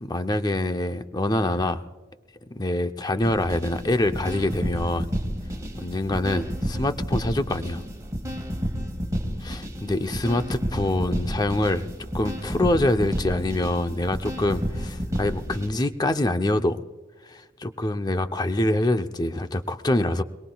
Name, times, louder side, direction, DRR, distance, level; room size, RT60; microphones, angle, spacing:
voice 1, 0.0-1.8 2.5-5.1 5.8-7.8 9.4-16.8 17.2-20.2, left 1 dB, 20° left, 8 dB, 0.6 m, -25 dB
sound 1, 3.2-15.7, equal, 20° right, 1.7 m, -31 dB
22.5 x 21.5 x 2.3 m, 1.4 s
head